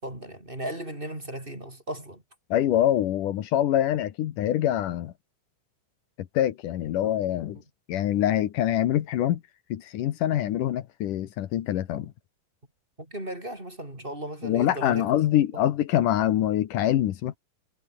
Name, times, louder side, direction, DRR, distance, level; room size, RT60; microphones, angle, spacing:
voice 1, 0.0-2.2 13.0-15.2 15.5-15.7, right 1 dB, 15° right, 5.6 m, -36 dB
voice 2, 2.5-5.1 6.3-7.6 7.9-9.4 9.7-12.1 14.4-17.4, left 12 dB, 75° left, 2.8 m, -25 dB
omnidirectional pair, 3.8 m